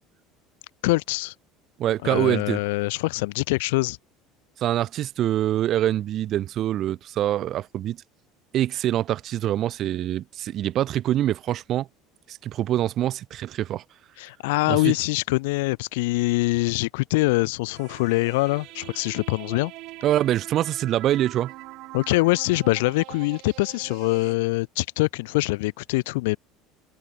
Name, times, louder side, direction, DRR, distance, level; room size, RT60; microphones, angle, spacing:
voice 1, 0.8-1.3 2.0-4.0 14.2-19.7 21.9-26.4, left 23 dB, 90° left, 2.3 m, -24 dB
voice 2, 1.8-2.6 4.6-8.0 8.5-11.9 12.3-13.8 14.7-14.9 20.0-21.5, right 12 dB, 45° right, 2.7 m, -25 dB
sound 1, 17.8-24.4, right 20 dB, 60° right, 6.0 m, -43 dB
open air
supercardioid pair, 125°, 0 cm